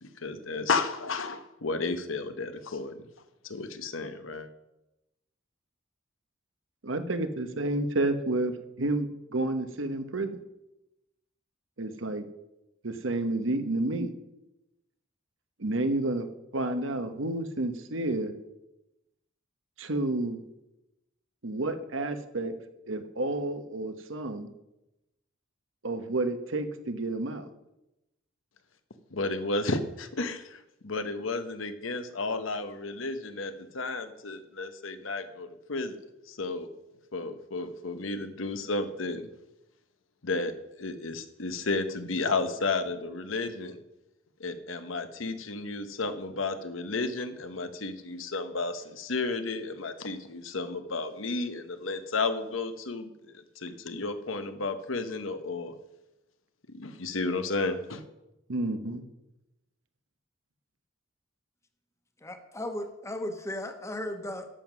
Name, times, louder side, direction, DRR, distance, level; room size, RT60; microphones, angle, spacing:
voice 1, 0.0-3.0 3.4-4.5 29.1-36.0 36.3-36.7 37.1-39.3 40.2-43.8 44.4-55.7 56.7-58.0, left 3 dB, 85° left, 9 dB, 1.1 m, -32 dB
voice 2, 6.8-10.4 11.8-12.2 12.8-14.1 15.6-16.3 16.5-18.3 19.8-20.4 21.4-22.5 22.9-24.5 25.8-27.5 58.5-59.0, right 2 dB, 75° right, 9 dB, 1.1 m, -30 dB
voice 3, 62.2-64.5, left 1 dB, 15° left, 6 dB, 1.1 m, -36 dB
11.5 x 7.5 x 6.0 m, 0.92 s
head